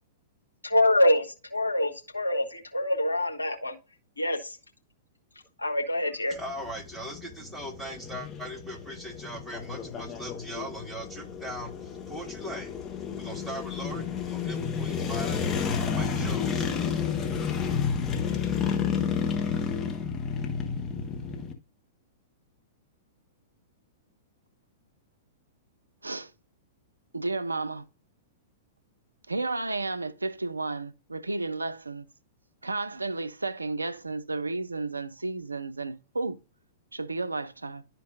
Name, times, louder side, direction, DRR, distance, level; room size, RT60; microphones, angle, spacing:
voice 1, 0.6-3.8 4.2-4.6 5.6-6.4, left 1 dB, 85° left, 1.1 m, -25 dB
sound 1, 6.3-21.5, left 6 dB, 20° left, 1.3 m, -31 dB
voice 2, 6.3-12.8 13.1-15.5 15.9-16.7, equal, ahead, 1.4 m, -39 dB
voice 3, 27.1-27.8 29.3-32.1 32.6-36.4 36.9-37.8, right 3 dB, 80° right, 0.5 m, -32 dB
11.5 x 4.5 x 2.5 m
figure-of-eight pair, 105°, 0 cm